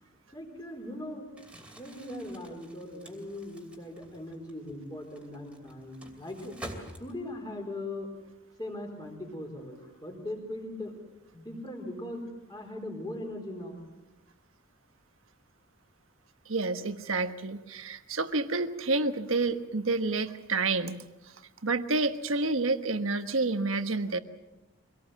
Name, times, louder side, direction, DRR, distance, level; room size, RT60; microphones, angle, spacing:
voice 1, 0.3-1.3 1.8-6.5 7.0-8.1 8.6-11.0 11.3-13.8, left 1 dB, 20° left, 1 dB, 4.0 m, -39 dB
Crumpling crinkling, 1.3-7.5, right 1 dB, 5° right, 2.7 m, -48 dB
voice 2, 16.5-21.0 21.6-24.2, right 3 dB, 70° right, 9 dB, 1.3 m, -29 dB
24.5 x 18.0 x 7.4 m, 1.0 s
head